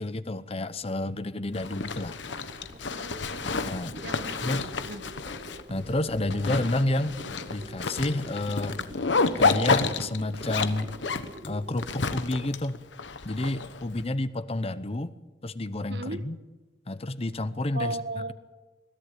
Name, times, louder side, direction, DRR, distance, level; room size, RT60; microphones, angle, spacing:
voice 1, 0.0-2.2 3.6-4.0 4.4-4.7 5.7-7.2 7.5-8.8 9.4-10.9 11.5-12.8 13.2-15.1 15.4-16.4 16.9-18.0, left 2 dB, 35° left, 14 dB, 0.8 m, -30 dB
Zipper (clothing), 1.5-14.0, left 4 dB, 90° left, 1.1 m, -30 dB
sound 1, 2.3-12.5, right 1 dB, 35° right, 1.1 m, -46 dB
voice 2, 2.9-3.5 4.0-5.0 15.9-16.2 17.7-18.3, right 2 dB, 65° right, 10 dB, 1.5 m, -36 dB
21.5 x 15.0 x 9.2 m, 1.2 s
head